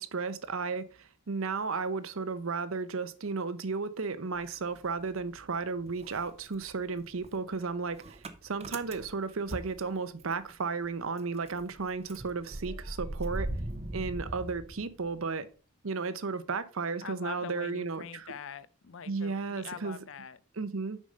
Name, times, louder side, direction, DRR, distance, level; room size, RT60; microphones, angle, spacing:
voice 1, 0.0-13.5 13.9-15.5 15.8-18.3 19.1-20.0 20.6-21.0, right 4 dB, 70° right, 0.7 m, -34 dB
Motor vehicle (road) / Engine starting, 4.4-5.6 5.9-10.5 10.8-10.9 11.2-15.3, right 1 dB, 30° right, 0.6 m, -40 dB
voice 2, 17.0-20.4, left 6 dB, 60° left, 0.5 m, -43 dB
6.3 x 5.3 x 5.3 m
head